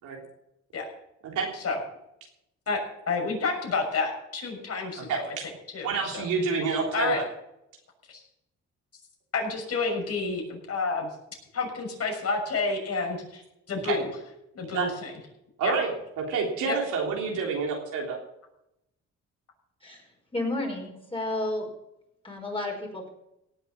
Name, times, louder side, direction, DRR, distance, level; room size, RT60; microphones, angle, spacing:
voice 1, 3.1-5.3 5.7-6.3 6.9-7.2 8.1-8.2 9.3-11.1 11.5-13.4 13.7-14.1 14.5-15.1 15.6-15.7 16.6-16.8, left 4 dB, 55° left, 1 dB, 6.5 m, -29 dB
voice 2, 5.1-5.4 5.8-7.2 13.9-14.0 14.7-14.9 15.6-15.9 16.2-18.2, right 5 dB, 85° right, -1 dB, 3.6 m, -28 dB
voice 3, 19.8-21.7 22.2-23.1, left 2 dB, 20° left, 0 dB, 5.3 m, -32 dB
18.0 x 7.2 x 7.1 m, 0.82 s
cardioid pair, 90°, 30 cm